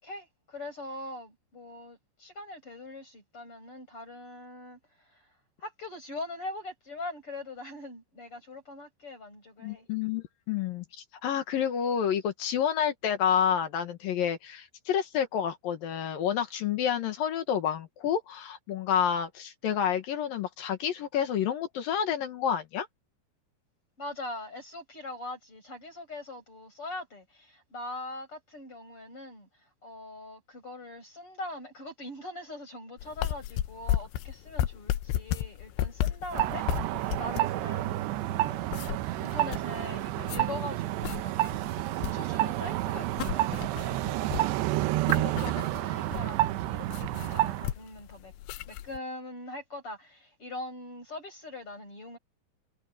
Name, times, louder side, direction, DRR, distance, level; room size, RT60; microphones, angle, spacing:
voice 1, 0.0-5.3 5.6-9.9 24.0-38.7 39.0-41.3 41.9-48.3 48.7-52.2, left 2 dB, 30° left, 8.1 m, -42 dB
voice 2, 9.6-22.9, left 8 dB, 60° left, 2.8 m, -29 dB
sound 1, 33.0-49.0, left 12 dB, 85° left, 3.2 m, -34 dB
sound 2, 36.3-47.7, right 16 dB, 85° right, 2.8 m, -30 dB
omnidirectional pair, 5.0 m